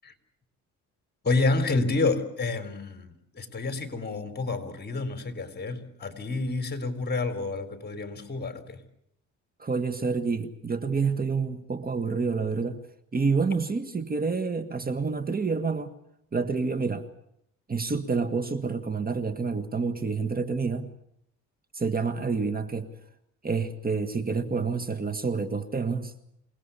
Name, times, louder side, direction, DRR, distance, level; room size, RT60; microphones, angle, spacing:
voice 1, 1.2-8.8, left 3 dB, 35° left, 4.0 m, -29 dB
voice 2, 9.6-12.8 13.1-15.9 16.3-17.0 17.7-20.9 21.7-22.9 23.4-26.1, right 4 dB, 30° right, 1.8 m, -28 dB
28.0 x 19.0 x 7.1 m
cardioid pair, 90°, 30 cm